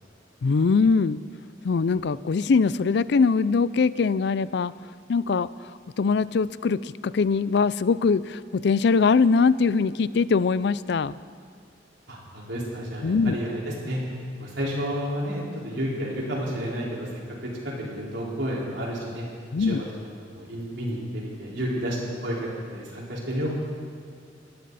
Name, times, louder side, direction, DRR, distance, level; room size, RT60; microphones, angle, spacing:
voice 1, 0.4-1.2 1.6-4.7 5.1-5.5 6.0-11.2 13.0-13.4 19.5-19.8, left 4 dB, 65° left, 17 dB, 0.4 m, -22 dB
voice 2, 12.1-19.2 19.6-19.8 20.3-23.5, equal, 80° right, -4 dB, 4.5 m, -31 dB
21.5 x 15.0 x 4.2 m, 2.2 s
head